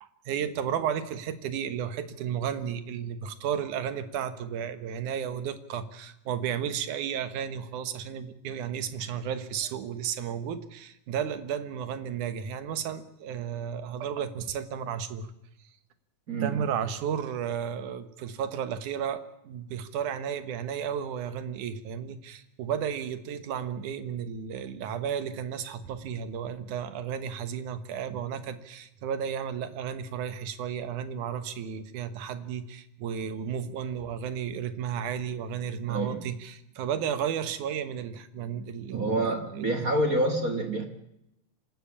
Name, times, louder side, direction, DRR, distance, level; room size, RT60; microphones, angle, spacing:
voice 1, 0.0-15.3 16.4-39.9, right 8 dB, 70° right, 12 dB, 2.6 m, -33 dB
voice 2, 16.3-16.6 35.9-36.3 38.9-40.9, right 1 dB, 40° right, 6 dB, 1.3 m, -27 dB
26.0 x 13.5 x 8.6 m, 0.84 s
omnidirectional pair, 3.9 m